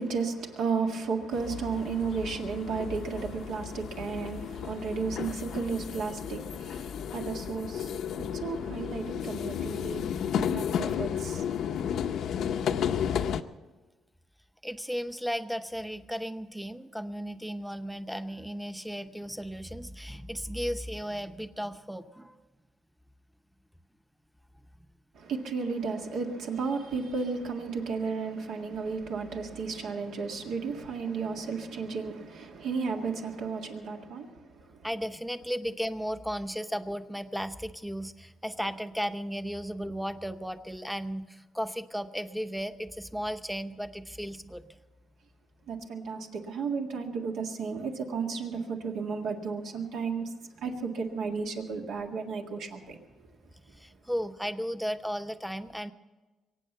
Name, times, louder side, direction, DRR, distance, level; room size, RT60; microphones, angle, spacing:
voice 1, 0.0-11.4 12.4-12.5 12.9-13.0 13.3-13.4 25.1-34.8 45.7-50.3 50.6-53.0, right 5 dB, 80° right, 1.9 m, -33 dB
sound 1, 1.3-13.4, left 8 dB, 75° left, 0.7 m, -33 dB
voice 2, 14.6-22.4 34.8-44.8 53.7-55.9, equal, ahead, 0.8 m, -35 dB
23.0 x 8.7 x 6.8 m
cardioid pair, 90°, 0 cm